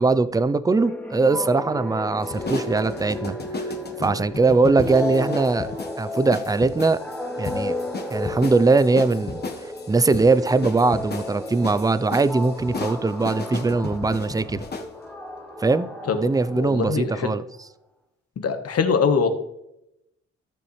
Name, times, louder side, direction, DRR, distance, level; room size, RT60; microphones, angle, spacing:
voice 1, 0.0-3.4 4.0-5.7 6.0-7.0 7.4-7.7 8.1-9.4 9.9-14.6 15.6-17.4, right 3 dB, 15° right, 0.4 m, -21 dB
sound 1, 0.7-17.1, left 2 dB, 5° left, 1.0 m, -33 dB
sound 2, 2.2-14.9, left 3 dB, 35° left, 1.2 m, -35 dB
voice 2, 16.6-17.3 18.4-19.3, left 5 dB, 55° left, 1.3 m, -22 dB
13.5 x 6.9 x 3.2 m
cardioid pair, 85°, 29 cm